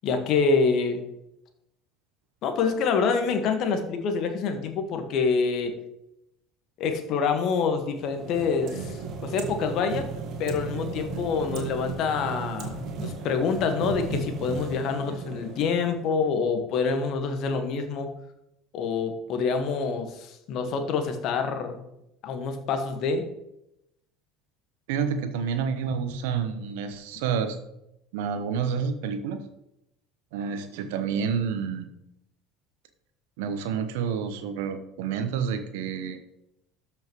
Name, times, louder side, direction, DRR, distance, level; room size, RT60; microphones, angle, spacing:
voice 1, 0.0-1.0 2.4-5.7 6.8-10.1 10.4-18.2 18.7-21.8 22.2-23.2, left 5 dB, 55° left, 6 dB, 1.5 m, -26 dB
sound 1, 7.9-16.2, right 5 dB, 55° right, 1.6 m, -35 dB
voice 2, 24.9-27.6 28.1-29.4 30.3-31.9 33.4-36.2, right 6 dB, 70° right, 8 dB, 1.0 m, -29 dB
13.0 x 5.7 x 3.1 m, 0.83 s
hypercardioid pair, 70°, 0 cm